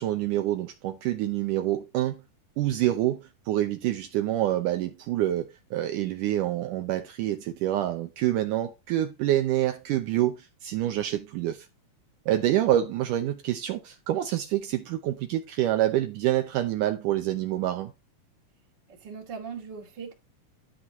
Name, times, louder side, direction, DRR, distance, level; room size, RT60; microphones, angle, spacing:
voice 1, 0.0-2.2 2.6-3.2 3.5-11.7 12.3-17.9, right 13 dB, 75° right, 2.2 m, -27 dB
voice 2, 18.9-20.1, right 6 dB, 35° right, 2.4 m, -39 dB
11.5 x 5.9 x 4.2 m
omnidirectional pair, 3.9 m